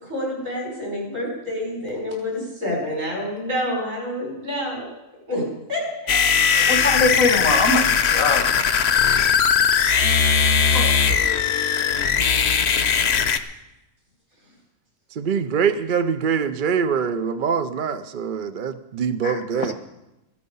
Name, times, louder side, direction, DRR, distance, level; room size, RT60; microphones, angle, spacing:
voice 1, 0.0-4.9 5.3-6.2 6.5-6.6, left 1 dB, 70° right, 6.2 m, -28 dB
sound 1, 6.1-13.4, left 7 dB, 55° left, 1.0 m, -19 dB
voice 2, 6.7-8.5 10.7-10.9 19.2-19.7, left 3 dB, 85° left, 1.8 m, -22 dB
voice 3, 15.1-19.7, right 6 dB, 50° right, 0.6 m, -24 dB
16.0 x 13.0 x 5.5 m
omnidirectional pair, 1.4 m